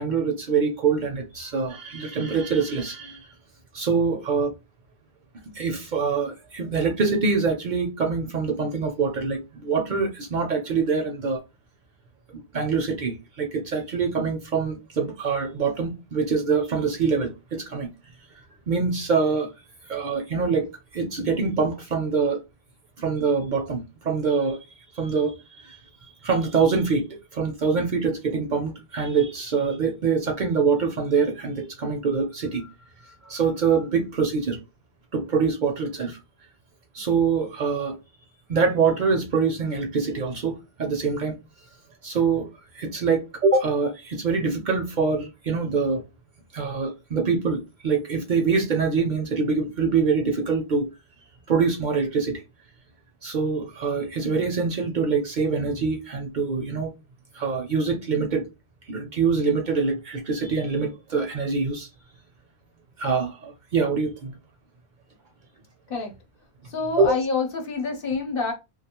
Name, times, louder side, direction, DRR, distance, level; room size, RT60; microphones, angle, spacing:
voice 1, 0.0-3.3 3.7-4.5 5.5-11.4 12.3-17.9 18.7-19.5 19.9-22.4 23.0-24.7 24.9-25.8 26.2-32.7 33.0-34.6 35.1-36.2 36.9-38.0 38.5-41.4 42.0-42.5 42.7-46.0 46.5-50.9 51.5-52.4 53.2-56.9 57.3-58.5 58.9-61.9 63.0-64.3 67.0-67.1, right 5 dB, 60° right, 0.6 m, -24 dB
voice 2, 66.7-68.5, left 4 dB, 65° left, 0.9 m, -27 dB
2.5 x 2.3 x 2.8 m
omnidirectional pair, 1.1 m